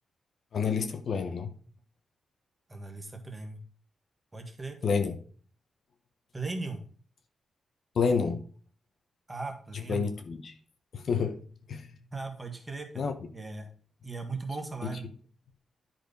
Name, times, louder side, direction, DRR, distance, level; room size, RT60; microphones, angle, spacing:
voice 1, 0.5-1.5 4.8-5.2 7.9-8.4 9.9-10.5 10.9-11.4 11.7-11.9 13.0-13.1 14.8-15.0, left 5 dB, 50° left, 8 dB, 0.9 m, -29 dB
voice 2, 2.7-3.6 4.3-4.9 6.3-6.8 9.3-10.1 12.1-13.1 13.3-13.7 14.0-15.0, right 3 dB, 15° right, 3 dB, 1.5 m, -38 dB
10.5 x 4.4 x 5.2 m, 0.42 s
wide cardioid pair, 180°, 0 cm